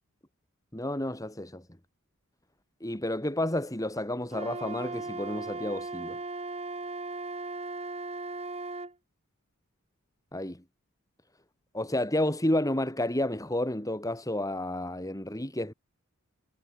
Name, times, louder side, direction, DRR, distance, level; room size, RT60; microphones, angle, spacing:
voice 1, 0.7-1.6 2.8-6.2 10.3-10.6 11.7-15.7, left 1 dB, 15° left, 3.9 m, -30 dB
Wind instrument woodwind instrument, 4.3-8.9, right 2 dB, 30° right, 4.9 m, -37 dB
head